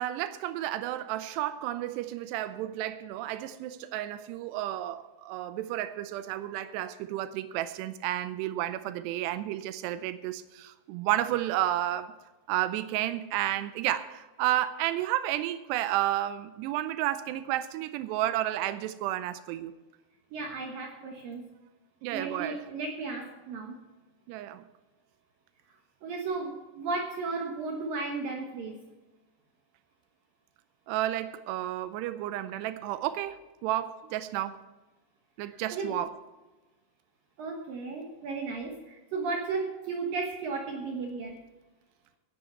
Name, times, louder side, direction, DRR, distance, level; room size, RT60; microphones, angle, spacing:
voice 1, 0.0-12.1 12.5-19.7 22.0-22.6 24.3-24.6 30.9-34.6 35.4-36.1, right 13 dB, 85° right, 2.4 m, -31 dB
voice 2, 20.3-21.4 22.1-23.8 26.0-28.8 35.4-35.9 37.4-41.4, right 4 dB, 65° right, 2.4 m, -34 dB
16.0 x 10.0 x 4.5 m
omnidirectional pair, 5.5 m